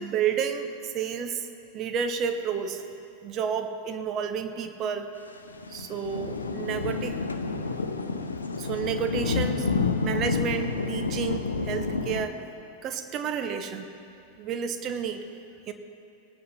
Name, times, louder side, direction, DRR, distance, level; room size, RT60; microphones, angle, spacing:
voice 1, 0.0-1.5 1.7-2.8 3.2-5.1 5.7-7.2 8.6-9.7 10.0-12.4 12.8-13.9 14.4-15.3 15.7-15.8, right 7 dB, 30° right, 7 dB, 1.0 m, -30 dB
sound 1, 5.4-12.3, left 4 dB, 75° left, 0.7 m, -29 dB
20.0 x 9.5 x 4.2 m, 2.7 s
figure-of-eight pair, 90°, 0 cm